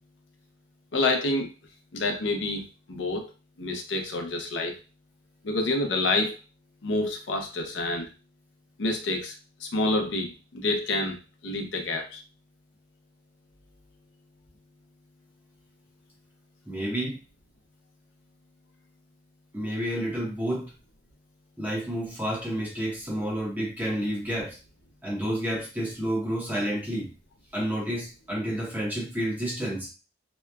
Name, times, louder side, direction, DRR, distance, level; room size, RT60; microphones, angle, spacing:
voice 1, 0.9-1.5 1.9-3.3 3.6-4.8 5.4-6.4 6.8-8.1 8.8-9.3 9.6-11.2 11.4-12.2, left 2 dB, 80° left, 5 dB, 0.6 m, -28 dB
voice 2, 16.7-17.2 19.5-20.7 21.6-24.6 25.0-27.1 27.5-29.9, equal, 10° right, -5 dB, 0.8 m, -30 dB
2.8 x 2.2 x 2.3 m, 0.30 s
head